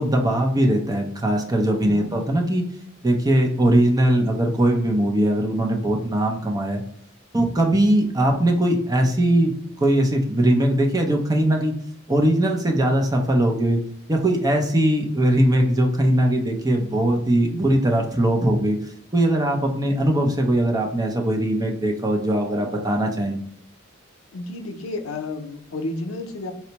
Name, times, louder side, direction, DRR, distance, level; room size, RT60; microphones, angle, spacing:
voice 1, 0.0-2.6 3.0-6.8 7.3-11.7 12.1-13.8 14.1-18.8 19.1-23.4, right 1 dB, 20° right, 2 dB, 0.5 m, -20 dB
voice 2, 24.3-26.5, left 2 dB, 80° left, 5 dB, 0.5 m, -31 dB
4.3 x 2.0 x 2.8 m, 0.70 s
head